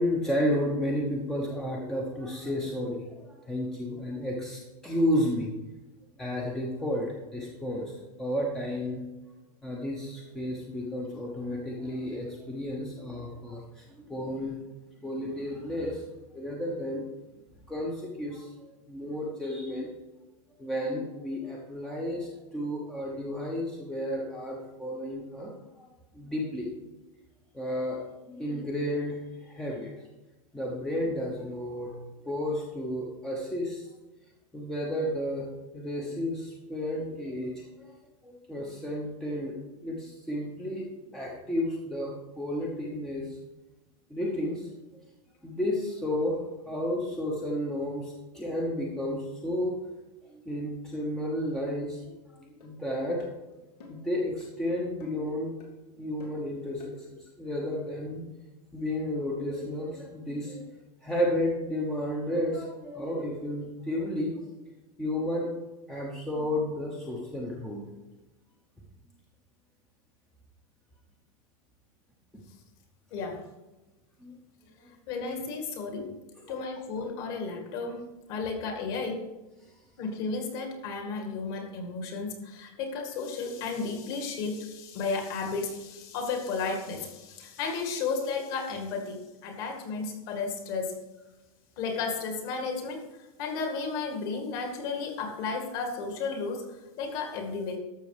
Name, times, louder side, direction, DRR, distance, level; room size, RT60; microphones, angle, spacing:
voice 1, 0.0-5.5 6.2-9.0 9.6-14.6 15.0-16.0 16.3-17.0 17.7-19.9 20.6-25.5 25.8-25.9 26.1-26.7 27.5-29.9 30.5-32.0 32.2-33.9 34.5-37.9 38.2-43.4 44.1-44.7 45.4-49.8 50.2-52.1 52.6-53.3 53.9-55.5 56.0-58.2 58.7-60.6 61.0-64.4 65.0-65.5 65.9-67.9 74.2-74.3 74.8-74.9, left 1 dB, ahead, -2 dB, 0.9 m, -32 dB
sound 1, 52.6-52.7 53.2-53.4 53.8-54.1 54.4-54.5 55.0-55.3 55.6-55.7 56.2-56.4 56.8-56.9, left 2 dB, 90° left, 3.0 m, -48 dB
voice 2, 73.1-73.4 75.1-76.1 76.5-79.3 80.0-91.0 91.8-97.8, left 4 dB, 35° left, 4 dB, 2.0 m, -33 dB
12.5 x 6.9 x 4.9 m, 1.1 s
supercardioid pair, 180°, 20 cm